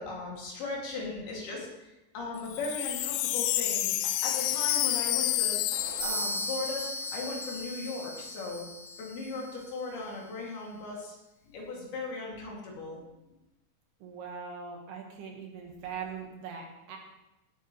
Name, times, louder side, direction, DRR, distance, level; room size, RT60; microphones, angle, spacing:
voice 1, 0.0-3.9 4.2-5.6 6.0-8.7 9.0-11.2 11.5-13.0, left 3 dB, 65° left, -3 dB, 4.1 m, -38 dB
Wind chime, 2.4-7.6 7.9-8.0 8.2-8.6, left 14 dB, 85° left, 2.4 m, -30 dB
sound 1, 5.7-6.7, right 6 dB, 90° right, 3.4 m, -48 dB
sound 2, 6.0-9.8, equal, 30° right, 1.4 m, -38 dB
voice 2, 14.0-17.0, right 6 dB, 70° right, 1 dB, 3.2 m, -41 dB
17.5 x 9.2 x 3.1 m, 0.95 s
omnidirectional pair, 5.1 m